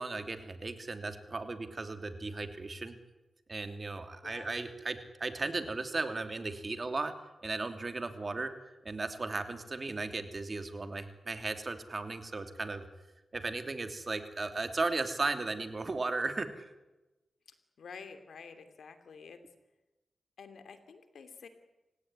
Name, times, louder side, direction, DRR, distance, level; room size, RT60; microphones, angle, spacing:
voice 1, 0.0-3.0 3.5-7.1 7.4-8.5 8.8-12.8 13.3-16.6, right 3 dB, 40° right, 8 dB, 3.0 m, -36 dB
voice 2, 17.8-19.4 20.4-21.5, left 5 dB, 90° left, 9 dB, 2.8 m, -49 dB
28.5 x 17.0 x 9.9 m, 1.1 s
cardioid pair, 80°, 0 cm